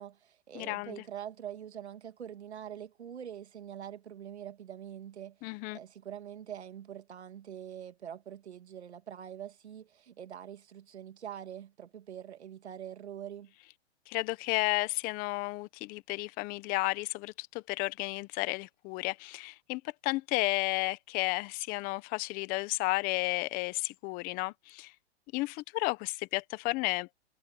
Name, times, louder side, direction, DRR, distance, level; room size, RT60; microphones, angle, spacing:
voice 1, 0.0-13.5, right 9 dB, 85° right, 2.6 m, -44 dB
voice 2, 0.5-1.0 5.4-5.8 14.1-24.9 25.3-27.1, left 22 dB, 25° left, 1.0 m, -32 dB
hypercardioid pair, 145°, 32 cm